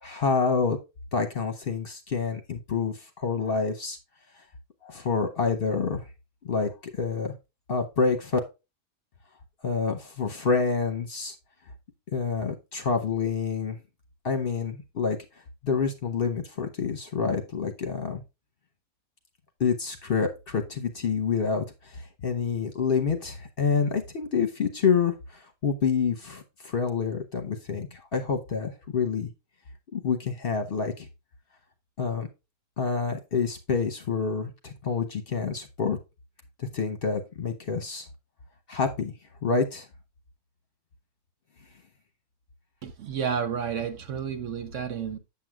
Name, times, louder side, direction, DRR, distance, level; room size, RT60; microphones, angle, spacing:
voice 1, 0.0-0.8 1.1-4.0 4.8-6.0 6.4-7.3 7.7-8.4 9.6-11.3 12.1-13.8 14.2-15.2 15.6-18.2 19.6-29.3 29.9-31.1 32.0-32.3 32.8-36.0 36.6-38.1 38.7-39.1 39.4-39.9, left 5 dB, 45° left, 0.9 m, -27 dB
voice 2, 42.8-45.2, right 7 dB, 60° right, 1.1 m, -31 dB
7.7 x 7.3 x 2.3 m
omnidirectional pair, 1.6 m